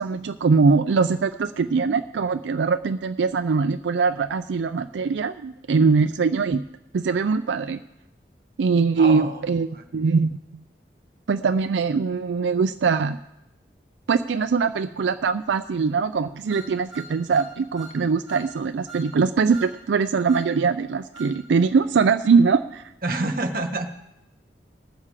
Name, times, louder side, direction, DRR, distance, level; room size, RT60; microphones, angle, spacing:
voice 1, 0.0-6.6 6.9-7.8 8.6-9.7 9.9-10.4 11.3-13.2 14.1-22.8, right 5 dB, 90° right, 9 dB, 0.4 m, -22 dB
voice 2, 9.0-9.4 9.7-9.8 23.0-23.9, right 2 dB, 50° right, 6 dB, 1.2 m, -27 dB
sound 1, 16.5-18.0 18.3-18.5 18.9-19.1 19.5-19.7 20.3-20.5 21.1-21.4, right 4 dB, 5° right, 1.9 m, -41 dB
19.5 x 7.4 x 4.9 m, 0.89 s
head